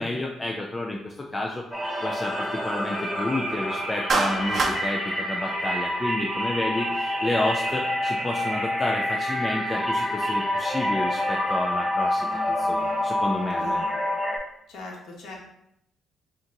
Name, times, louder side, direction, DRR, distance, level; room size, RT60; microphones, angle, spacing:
voice 1, 0.0-1.6 2.0-13.9, left 2 dB, 20° left, 0 dB, 0.4 m, -30 dB
sound 1, 1.7-14.4, left 1 dB, 5° right, 1.1 m, -27 dB
Clapping, 4.1-4.8, right 4 dB, 50° right, 0.7 m, -24 dB
voice 2, 13.6-13.9 14.7-15.4, left 2 dB, 80° left, -1 dB, 1.0 m, -40 dB
3.7 x 2.6 x 4.5 m, 0.76 s
cardioid pair, 90°, 0 cm